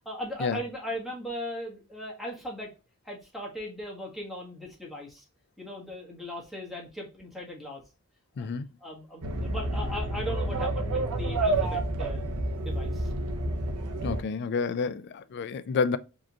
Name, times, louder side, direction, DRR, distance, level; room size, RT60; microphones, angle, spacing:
voice 1, 0.0-2.7 3.0-5.2 5.6-7.8 8.4-8.5 8.8-12.3 12.6-13.1, equal, ahead, 1.4 m, -38 dB
voice 2, 8.4-8.7 14.0-16.0, left 5 dB, 50° left, 0.3 m, -29 dB
sound 1, 9.2-14.2, right 2 dB, 85° right, 0.7 m, -29 dB
4.8 x 3.0 x 2.3 m
head